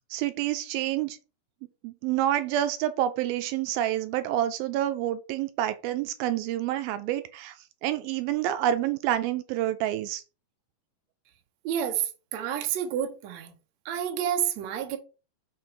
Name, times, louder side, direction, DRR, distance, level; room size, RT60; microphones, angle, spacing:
voice 1, 0.1-1.2 1.8-7.5 7.8-10.2, right 12 dB, 85° right, 2.5 m, -28 dB
voice 2, 11.7-12.0 12.3-13.5 13.9-15.0, right 9 dB, 65° right, 2.0 m, -29 dB
6.0 x 4.5 x 5.0 m
omnidirectional pair, 4.2 m